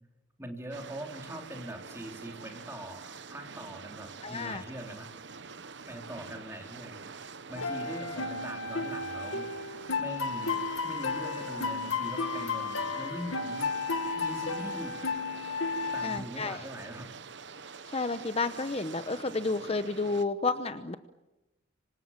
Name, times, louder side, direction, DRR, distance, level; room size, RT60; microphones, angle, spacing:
voice 1, 0.4-5.1 5.9-7.1 7.5-9.7 10.0-10.6 10.8-13.7 14.2-15.0 15.9-17.2, right 1 dB, 15° right, 3 dB, 3.6 m, -42 dB
sound 1, 0.7-20.3, right 5 dB, 60° right, 1.1 m, -46 dB
voice 2, 4.2-4.6 16.0-16.6 17.9-21.0, left 3 dB, 30° left, 10 dB, 0.9 m, -31 dB
sound 2, 7.6-16.2, left 4 dB, 90° left, 1.8 m, -33 dB
26.5 x 25.5 x 7.4 m, 0.97 s
head